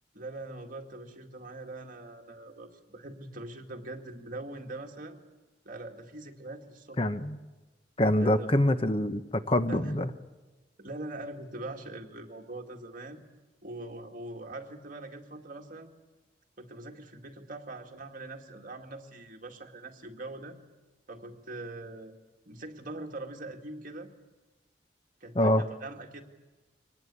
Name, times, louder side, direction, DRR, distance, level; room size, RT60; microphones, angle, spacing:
voice 1, 0.1-5.2 5.7-7.0 8.2-8.5 9.7-9.9 10.8-13.2 13.6-15.9 16.6-20.6 21.1-22.1 22.5-24.1 25.2-26.2, right 2 dB, 50° right, 2 dB, 2.2 m, -42 dB
voice 2, 7.0-7.4 8.0-10.1 25.3-25.6, left 1 dB, 30° left, 10 dB, 0.9 m, -25 dB
24.0 x 19.0 x 8.4 m, 1.2 s
head